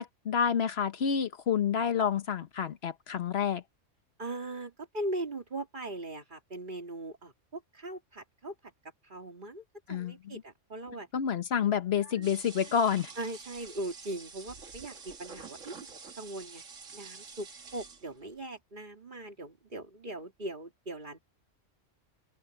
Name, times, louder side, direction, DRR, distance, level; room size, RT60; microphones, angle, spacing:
voice 1, 0.0-3.6 9.9-10.4 11.1-13.1, left 7 dB, 60° left, 1.2 m, -29 dB
voice 2, 4.2-8.5 9.0-11.1 12.0-12.3 13.2-15.8 16.1-16.6 16.9-21.2, right 1 dB, 40° right, 2.7 m, -40 dB
sound 1, 12.2-18.3, right 5 dB, 85° right, 2.1 m, -48 dB
omnidirectional pair, 1.3 m